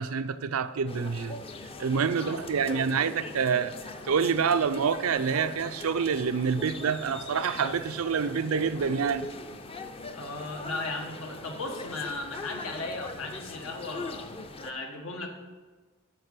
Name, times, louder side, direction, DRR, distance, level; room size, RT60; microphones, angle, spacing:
voice 1, 0.0-1.4 1.8-3.7 4.1-9.3, right 6 dB, 90° right, 0.5 m, -27 dB
sound 1, 0.9-14.7, left 2 dB, 25° left, 0.5 m, -41 dB
voice 2, 2.1-3.2 10.1-14.3 14.6-15.3, left 2 dB, 85° left, 1.5 m, -37 dB
8.9 x 6.0 x 6.6 m
head